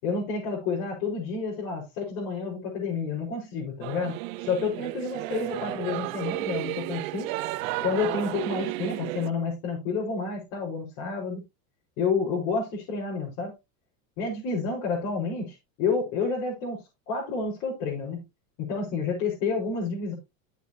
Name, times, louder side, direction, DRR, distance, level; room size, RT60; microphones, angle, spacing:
voice 1, 0.0-7.3 7.8-11.4 12.0-13.5 14.2-16.8 17.1-18.2 18.6-20.1, left 4 dB, 65° left, -5 dB, 5.3 m, -29 dB
Singing / Musical instrument, 3.8-9.3, right 18 dB, 70° right, 0.9 m, -33 dB
12.0 x 8.1 x 2.9 m, 0.24 s
supercardioid pair, 145°, 42 cm